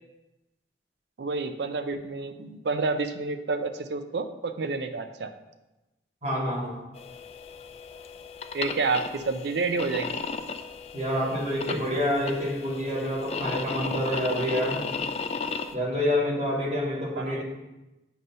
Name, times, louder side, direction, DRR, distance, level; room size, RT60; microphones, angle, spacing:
voice 1, 1.2-5.3 8.5-10.2 17.2-17.4, right 4 dB, 75° right, 8 dB, 0.5 m, -29 dB
voice 2, 6.2-6.7 10.9-14.8 15.7-17.4, equal, 40° right, -5 dB, 1.6 m, -27 dB
sound 1, 6.9-15.7, left 4 dB, 35° left, 0.3 m, -35 dB
7.8 x 2.7 x 5.4 m, 1.0 s
head